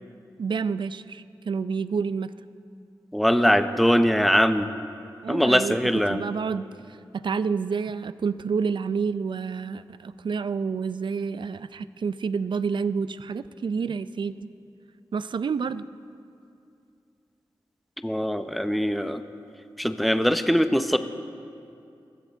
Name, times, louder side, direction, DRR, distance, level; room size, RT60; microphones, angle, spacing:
voice 1, 0.4-2.3 5.2-5.8 6.1-6.7 7.1-14.5 15.1-15.8, right 5 dB, 65° right, 14 dB, 0.5 m, -29 dB
voice 2, 3.1-4.7 5.3-6.2 18.0-19.2 19.8-21.0, equal, ahead, 9 dB, 0.8 m, -21 dB
21.5 x 14.5 x 3.6 m, 2.5 s
cardioid pair, 40°, 9 cm